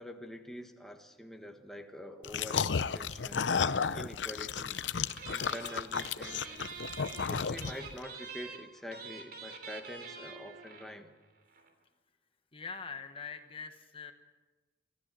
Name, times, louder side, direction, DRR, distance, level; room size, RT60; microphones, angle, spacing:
voice 1, 0.0-3.5 3.9-4.8 5.3-6.6 7.2-11.1, left 1 dB, ahead, 4 dB, 1.3 m, -46 dB
sound 1, 2.2-8.0, left 6 dB, 80° left, 0.6 m, -33 dB
sound 2, 4.6-4.8 5.1-11.0 11.2-11.3 11.5-11.7, right 5 dB, 55° right, 3.3 m, -46 dB
voice 2, 12.5-14.1, left 5 dB, 30° left, 7 dB, 1.2 m, -43 dB
24.5 x 15.5 x 7.6 m, 1.3 s
head